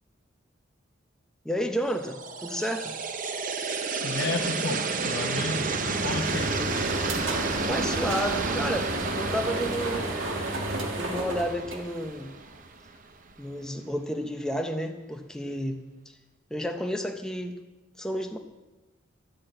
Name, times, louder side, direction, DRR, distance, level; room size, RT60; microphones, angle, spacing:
voice 1, 1.4-2.9 7.7-10.2 11.0-12.3 13.4-16.1 16.5-17.6 18.0-18.4, equal, 5° left, 4 dB, 0.7 m, -31 dB
sound 1, 1.9-12.9, right 4 dB, 40° right, 0.6 m, -31 dB
voice 2, 4.0-6.5, left 3 dB, 55° left, 2 dB, 0.8 m, -32 dB
sound 2, 5.1-12.4, right 1 dB, 70° right, 1.6 m, -32 dB
11.5 x 6.2 x 7.8 m, 1.1 s
head